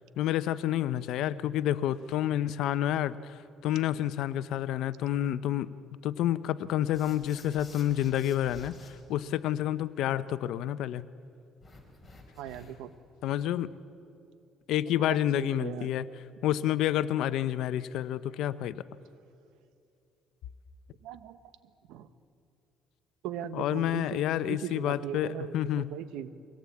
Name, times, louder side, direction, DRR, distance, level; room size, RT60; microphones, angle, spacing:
voice 1, 0.2-5.7 6.0-11.0 13.2-13.7 14.7-16.0 16.4-18.8 23.5-25.9, left 12 dB, 75° left, 15 dB, 0.7 m, -29 dB
sound 1, 6.9-8.9 11.6-12.9, left 2 dB, 15° left, 4.6 m, -52 dB
voice 2, 12.4-12.9 15.0-15.9 21.0-21.4 21.9-22.1 23.2-26.3, right 10 dB, 85° right, 13 dB, 1.1 m, -39 dB
23.5 x 18.0 x 8.5 m, 2.6 s
cardioid pair, 110°, 0 cm